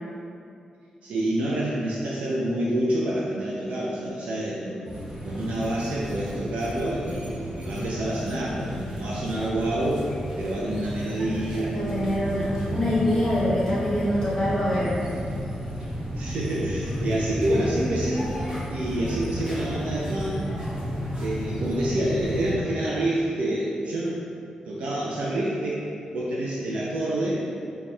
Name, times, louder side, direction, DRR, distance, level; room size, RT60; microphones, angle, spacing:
voice 1, 1.0-4.8 5.2-10.0 10.4-11.8 16.1-18.3 18.7-20.5 21.2-24.2 24.7-25.8 26.1-27.4, right 1 dB, 85° right, -6 dB, 0.4 m, -27 dB
sound 1, 4.8-22.5, equal, 25° right, 1.3 m, -32 dB
voice 2, 11.7-14.9, left 1 dB, 30° left, -9 dB, 1.1 m, -24 dB
4.3 x 2.3 x 3.2 m, 2.5 s
cardioid pair, 105°, 2 cm